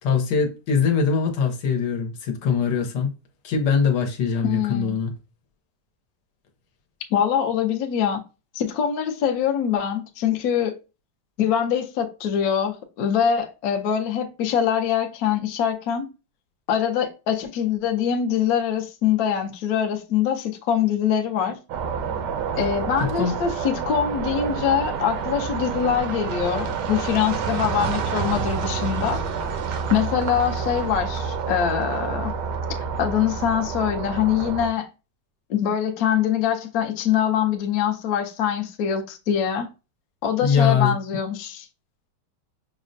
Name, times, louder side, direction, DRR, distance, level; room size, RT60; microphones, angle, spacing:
voice 1, 0.0-3.1 3.4-5.1 23.0-23.3 40.4-40.9, left 6 dB, 85° left, 1.4 m, -22 dB
voice 2, 4.4-4.9 7.1-8.2 8.5-10.8 11.4-16.1 16.7-21.6 22.6-29.2 29.9-32.3 33.0-34.9 35.5-39.7 40.2-41.7, left 8 dB, 70° left, 1.0 m, -23 dB
sound 1, 21.7-34.7, right 6 dB, 85° right, 1.3 m, -28 dB
6.1 x 2.1 x 2.5 m
omnidirectional pair, 1.8 m